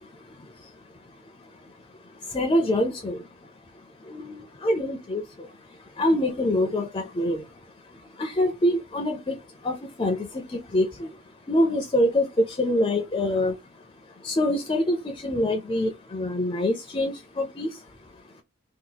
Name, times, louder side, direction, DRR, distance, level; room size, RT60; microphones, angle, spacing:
voice 1, 2.3-3.2 4.1-5.2 6.0-7.4 8.2-9.4 9.6-10.2 10.7-11.1 11.5-13.5 14.2-17.7, left 1 dB, 25° left, 0.4 m, -25 dB
2.8 x 2.3 x 3.8 m
head